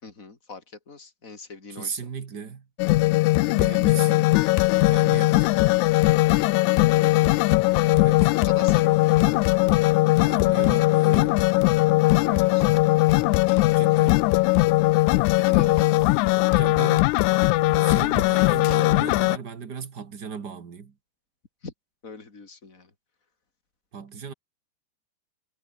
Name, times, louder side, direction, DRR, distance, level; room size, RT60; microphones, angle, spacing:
voice 1, 0.0-2.1 6.8-7.4 8.4-9.5 9.7-10.0 12.0-12.8 15.1-15.8 21.6-21.7 22.0-22.9, left 4 dB, 25° left, 4.0 m, -41 dB
voice 2, 1.7-2.7 3.5-4.4 4.9-5.5 7.9-8.3 10.2-11.4 13.7-14.2 15.5-15.9 16.4-17.1 17.8-20.9 23.9-24.3, right 6 dB, 40° right, 1.8 m, -37 dB
sound 1, 2.8-19.4, left 20 dB, 80° left, 1.8 m, -20 dB
omnidirectional pair, 3.8 m